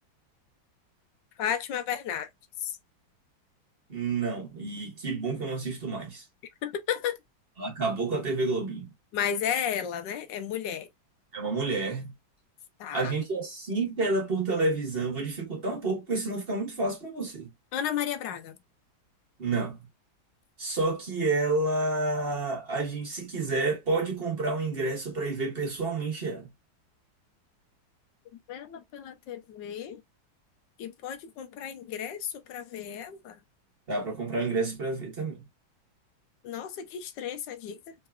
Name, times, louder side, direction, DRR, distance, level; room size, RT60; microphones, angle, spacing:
voice 1, 1.4-2.3 2.6-2.8 6.6-7.2 9.1-10.9 12.8-13.1 17.7-18.6 28.5-30.0 30.8-33.4 36.4-37.9, left 9 dB, 75° left, 1.2 m, -33 dB
voice 2, 3.9-6.2 7.6-8.9 11.3-12.1 12.9-17.5 19.4-19.8 20.6-26.5 33.9-35.4, right 3 dB, 35° right, 1.1 m, -29 dB
3.7 x 3.0 x 2.2 m
omnidirectional pair, 2.2 m